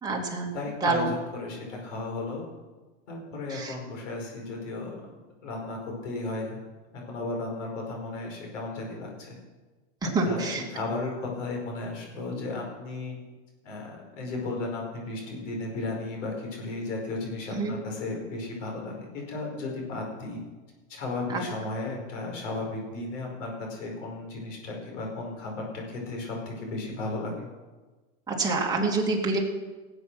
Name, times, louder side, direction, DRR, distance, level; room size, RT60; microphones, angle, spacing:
voice 1, 0.0-0.5 0.8-1.1 3.5-3.7 10.0-10.6 17.5-17.7 21.3-21.4 28.3-29.4, right 3 dB, 10° right, -2 dB, 2.8 m, -27 dB
voice 2, 0.5-2.4 3.1-6.6 6.9-9.4 10.0-13.2 13.6-20.4 20.9-27.4, left 2 dB, 80° left, 0 dB, 5.2 m, -35 dB
18.0 x 8.1 x 6.3 m, 1.3 s
supercardioid pair, 130°, 37 cm